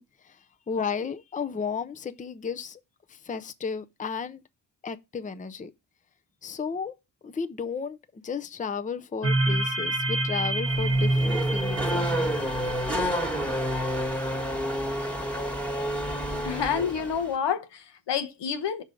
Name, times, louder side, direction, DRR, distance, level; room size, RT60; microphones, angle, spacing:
voice 1, 0.0-2.8 3.1-4.4 4.8-5.7 6.4-6.9 7.2-12.4, left 5 dB, 20° left, 0.6 m, -34 dB
sound 1, 9.2-14.1, right 2 dB, 30° right, 1.1 m, -27 dB
Race car auto racing / Accelerating revving vroom, 10.7-17.4, equal, 5° left, 1.5 m, -30 dB
voice 2, 16.4-18.8, left 7 dB, 70° left, 1.0 m, -29 dB
5.4 x 4.8 x 5.1 m
cardioid pair, 90°, 43 cm